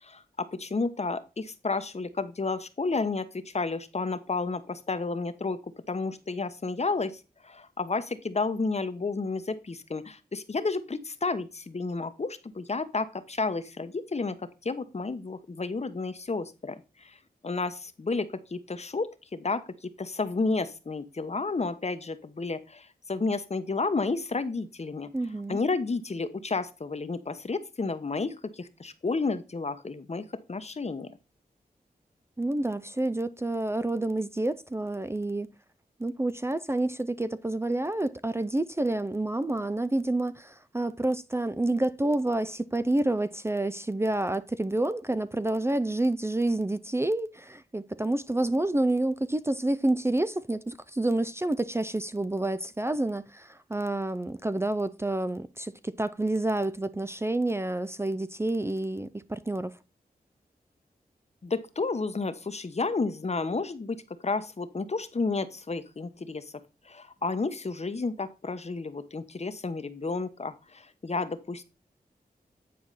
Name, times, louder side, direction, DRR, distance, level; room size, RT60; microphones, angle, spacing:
voice 1, 0.0-5.6 5.9-14.4 14.6-17.2 17.4-19.6 20.0-25.1 25.5-31.1 61.4-64.0 64.2-66.5 66.8-71.6, left 3 dB, 45° left, 1.0 m, -31 dB
voice 2, 25.1-25.6 32.4-35.5 36.0-59.7, right 2 dB, 15° right, 0.5 m, -28 dB
9.4 x 4.7 x 4.0 m
cardioid pair, 60°, 16 cm